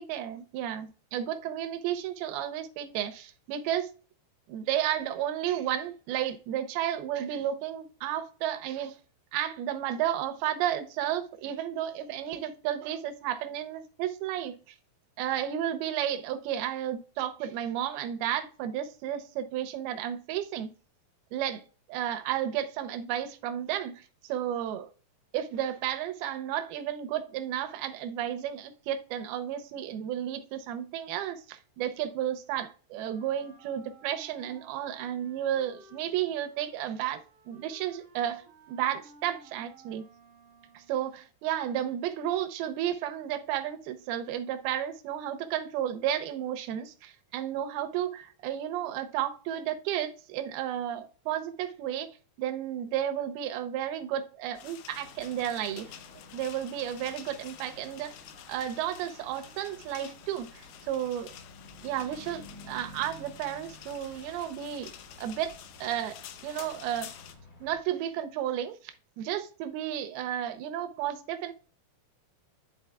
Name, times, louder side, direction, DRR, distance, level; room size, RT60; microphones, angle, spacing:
voice 1, 0.0-3.9 4.5-9.0 9.3-14.8 15.2-20.7 21.3-24.9 25.3-37.2 37.5-40.1 40.7-52.1 52.4-55.9 56.3-58.1 58.5-61.3 61.8-64.9 65.2-65.5 65.8-67.1 67.6-71.5, right 11 dB, 80° right, 2.4 m, -32 dB
Wind instrument woodwind instrument, 33.0-41.1, right 2 dB, 65° right, 1.1 m, -56 dB
sound 1, 54.5-67.4, left 10 dB, 80° left, 2.5 m, -49 dB
sound 2, 54.9-67.8, left 1 dB, 50° left, 1.2 m, -53 dB
11.0 x 4.0 x 2.3 m
omnidirectional pair, 4.7 m